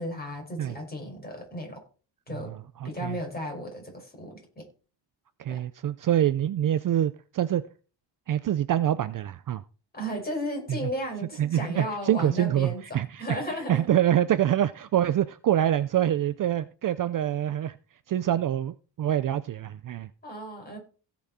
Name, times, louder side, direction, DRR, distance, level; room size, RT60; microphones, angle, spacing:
voice 1, 0.0-1.8 2.3-2.5 2.8-4.7 5.5-5.6 9.9-13.8 20.2-20.8, equal, 20° left, 1 dB, 5.5 m, -35 dB
voice 2, 2.3-3.2 5.4-7.6 8.3-9.6 10.7-10.9 11.4-13.4 13.7-17.7 18.1-20.1, right 11 dB, 45° right, 14 dB, 0.5 m, -26 dB
17.0 x 6.2 x 4.2 m, 0.37 s
cardioid pair, 135°, 45 cm